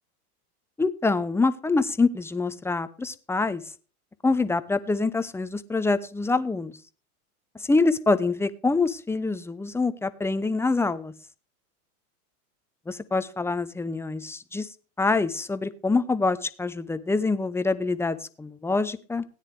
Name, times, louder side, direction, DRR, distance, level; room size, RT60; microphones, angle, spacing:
voice 1, 0.8-3.6 4.2-6.7 7.5-11.1 12.9-14.7 15.0-19.2, left 3 dB, 5° left, 13 dB, 0.6 m, -25 dB
17.0 x 9.9 x 3.3 m, 0.38 s
hypercardioid pair, 105°, 44 cm